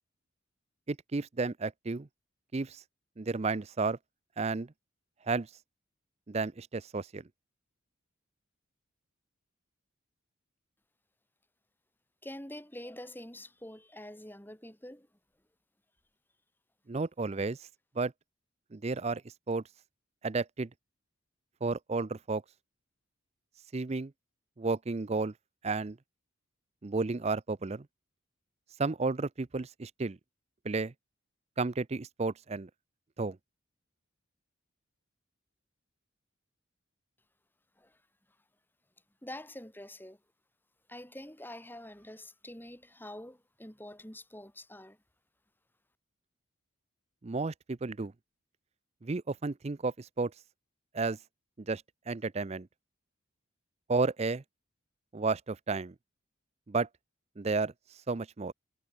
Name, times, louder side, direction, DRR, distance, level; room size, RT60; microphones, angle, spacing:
voice 1, 0.9-2.1 2.5-2.8 3.2-4.0 4.4-4.7 5.3-5.5 6.3-7.2 16.9-17.6 18.0-18.1 18.7-19.2 19.5-19.6 20.2-20.7 21.6-22.4 23.7-24.1 24.6-25.3 25.6-26.0 26.8-27.9 28.8-30.2 30.6-30.9 31.6-32.7 33.2-33.4 47.2-48.1 49.0-50.3 50.9-51.2 51.6-52.7 53.9-54.4 55.1-55.9 56.7-56.9 57.4-57.7 58.1-58.5, right 3 dB, 30° right, 0.5 m, -32 dB
voice 2, 12.2-15.1 37.8-38.0 39.2-40.2 40.9-45.0, left 1 dB, 10° left, 6.5 m, -46 dB
head